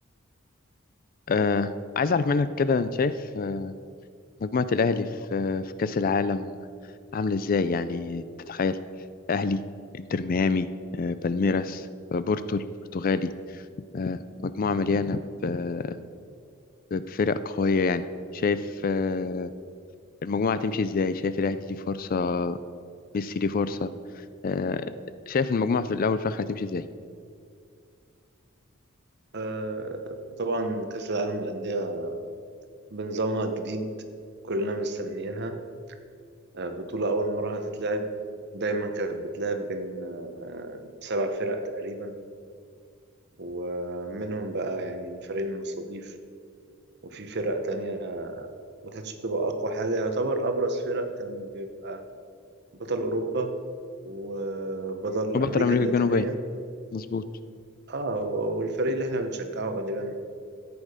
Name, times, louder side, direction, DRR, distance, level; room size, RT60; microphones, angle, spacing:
voice 1, 1.3-3.7 4.4-6.6 7.1-8.8 9.3-9.6 9.9-10.7 10.9-12.6 12.9-13.6 13.9-16.0 16.9-18.1 18.3-19.5 20.2-22.6 23.1-23.9 24.4-24.9 25.3-26.8 55.3-56.3 56.9-57.2, left 4 dB, 45° left, 14 dB, 0.4 m, -26 dB
voice 2, 29.3-32.2 32.9-33.9 34.4-35.6 36.5-38.1 38.5-42.1 43.4-46.1 47.0-48.5 48.8-52.0 52.7-53.6 54.0-56.4 57.9-60.1, right 2 dB, 55° right, 6 dB, 1.0 m, -30 dB
13.5 x 8.7 x 5.0 m, 2.3 s
head